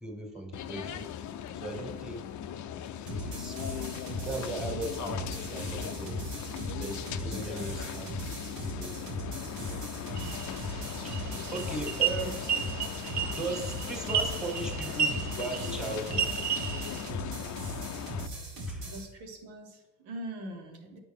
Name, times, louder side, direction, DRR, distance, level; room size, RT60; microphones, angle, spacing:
voice 1, 0.0-1.0 1.5-2.2 3.2-3.6 4.2-6.2 6.8-8.1 8.3-8.5 8.8-8.9 9.7-9.8 11.0-11.1 11.5-12.5 13.3-16.4 18.7-18.9, right 2 dB, ahead, 2 dB, 1.7 m, -38 dB
sound 1, 0.5-18.3, left 9 dB, 50° left, 0.5 m, -39 dB
sound 2, 3.1-19.1, equal, 65° right, 2.1 m, -38 dB
voice 2, 7.3-7.7 10.2-10.5 11.0-11.4 18.8-21.0, right 1 dB, 90° right, 2 dB, 1.0 m, -43 dB
sound 3, 10.2-17.1, right 7 dB, 45° right, 0.6 m, -33 dB
7.8 x 4.5 x 3.6 m, 1.1 s
supercardioid pair, 65°, 39 cm